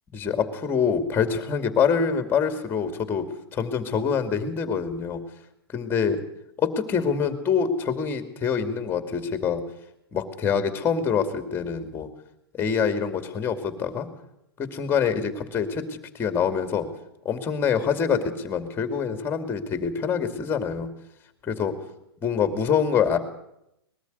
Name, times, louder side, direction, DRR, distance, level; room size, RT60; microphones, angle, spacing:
voice 1, 0.1-3.3 3.5-5.2 5.7-6.2 6.6-9.6 10.1-12.1 12.5-14.1 14.6-15.8 16.1-16.9 17.2-20.9 21.4-21.8 22.2-23.2, left 6 dB, 15° left, 9 dB, 2.4 m, -25 dB
20.5 x 13.5 x 9.4 m, 0.81 s
hypercardioid pair, 145°, 13 cm